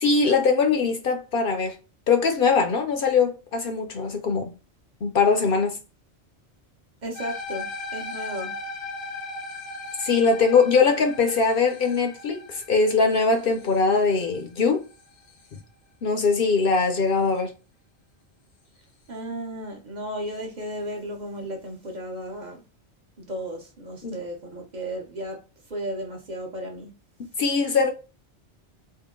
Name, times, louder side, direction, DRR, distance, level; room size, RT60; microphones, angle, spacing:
voice 1, 0.0-1.8 2.1-4.5 5.0-5.8 10.0-14.8 16.0-17.5 24.0-24.2 27.4-27.9, left 4 dB, 60° left, 0.7 m, -21 dB
voice 2, 7.0-8.5 19.1-22.6 23.2-25.4 25.7-26.9, right 1 dB, 45° right, 0.8 m, -34 dB
sound 1, 7.2-15.6, left 3 dB, 85° left, 1.1 m, -38 dB
3.6 x 2.1 x 3.6 m
omnidirectional pair, 1.2 m